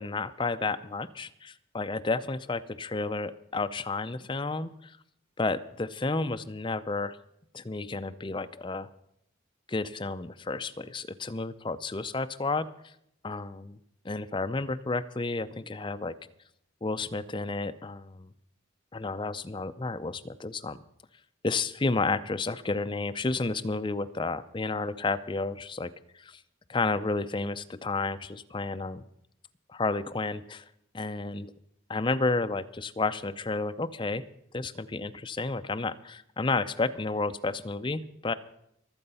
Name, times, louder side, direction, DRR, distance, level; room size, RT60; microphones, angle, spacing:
voice 1, 0.0-5.0 5.4-7.2 7.5-8.9 9.7-12.7 13.2-13.8 14.0-16.1 16.8-18.3 18.9-20.8 21.4-26.4 26.7-29.0 29.7-30.6 30.9-31.5 31.9-34.2 34.5-38.3, left 3 dB, 25° left, 10 dB, 0.5 m, -31 dB
23.0 x 7.8 x 5.6 m, 0.75 s
head